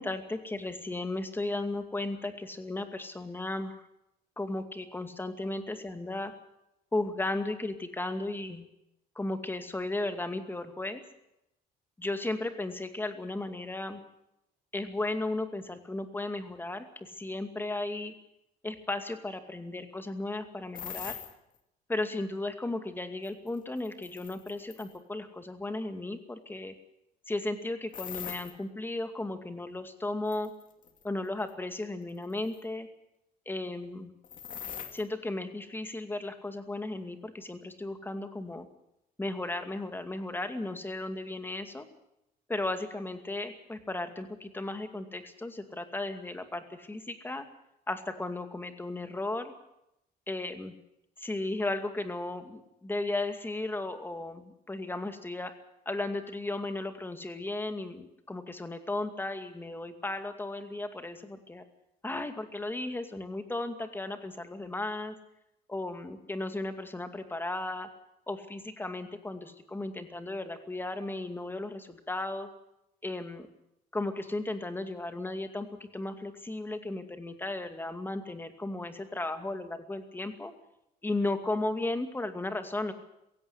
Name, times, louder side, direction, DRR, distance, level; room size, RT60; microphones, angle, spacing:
voice 1, 0.0-3.8 4.4-6.3 6.9-8.6 9.2-11.0 12.0-14.0 14.7-18.1 18.6-21.2 21.9-26.7 27.3-30.5 31.0-32.9 33.5-34.1 34.9-38.7 39.2-41.9 42.5-47.4 47.9-49.5 50.3-50.7 51.2-55.5 55.9-61.6 62.0-65.2 65.7-67.9 68.3-72.5 73.0-73.5 73.9-80.5 81.0-82.9, left 2 dB, 10° left, 8 dB, 2.3 m, -35 dB
sound 1, 20.7-21.3 23.3-25.0 27.9-28.5 30.3-31.0 31.5-31.6 32.4-32.6 34.2-35.0, left 8 dB, 50° left, 2.4 m, -41 dB
17.0 x 16.5 x 9.6 m, 0.82 s
cardioid pair, 110°, 17 cm